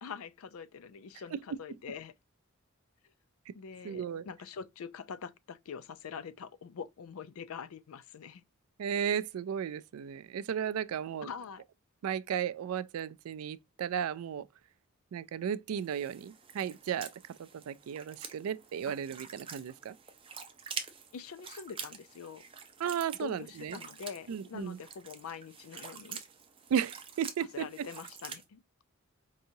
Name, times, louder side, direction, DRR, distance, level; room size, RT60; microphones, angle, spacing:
voice 1, 0.0-2.1 3.5-8.4 11.2-11.6 21.1-22.4 23.2-26.2 27.5-28.6, left 6 dB, 80° left, 0.4 m, -44 dB
voice 2, 3.8-4.2 8.8-11.3 12.0-14.5 15.1-17.1 17.4-19.9 22.8-23.8 24.3-24.8 26.7-27.9, right 8 dB, 85° right, 0.3 m, -34 dB
sound 1, 15.8-28.4, right 6 dB, 25° right, 0.5 m, -47 dB
4.6 x 2.8 x 2.7 m
head